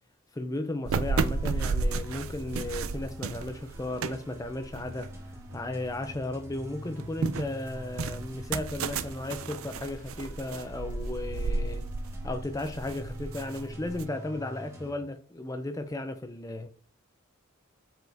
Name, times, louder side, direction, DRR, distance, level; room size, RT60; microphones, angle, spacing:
voice 1, 0.3-5.1 5.5-11.9 12.2-16.7, left 2 dB, 15° left, 0.4 m, -35 dB
sound 1, 0.9-6.0 6.4-14.0, right 4 dB, 85° right, 0.5 m, -33 dB
sound 2, 1.2-14.9, equal, 15° right, 1.2 m, -45 dB
7.8 x 4.6 x 2.7 m
head